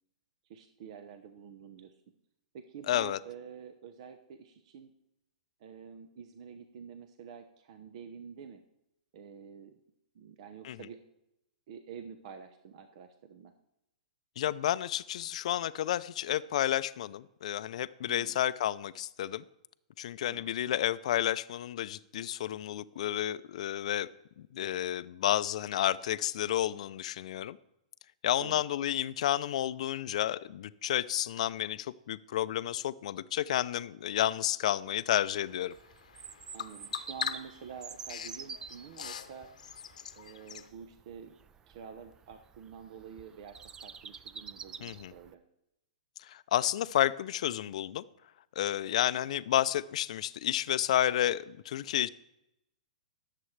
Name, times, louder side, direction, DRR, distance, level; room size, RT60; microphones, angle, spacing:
voice 1, 0.5-2.0 2.5-4.9 5.6-8.6 9.1-9.8 10.1-11.0 11.7-13.5 18.1-18.4 20.3-20.5 28.4-28.6 36.5-39.5 40.2-41.3 41.7-45.4, right 7 dB, 55° right, 8 dB, 0.9 m, -48 dB
voice 2, 2.9-3.2 10.6-10.8 14.4-19.4 20.0-24.1 24.4-27.6 28.2-35.7 44.8-45.1 46.2-48.0 48.6-52.1, left 12 dB, 65° left, 16 dB, 0.5 m, -31 dB
Bird vocalization bird call bird song, 35.1-40.7, left 7 dB, 85° left, 0.9 m, -43 dB
Bird vocalization bird call bird song 2, 35.7-45.3, right 6 dB, 15° right, 0.4 m, -49 dB
18.0 x 7.6 x 3.3 m, 0.85 s
hypercardioid pair, 135°, 4 cm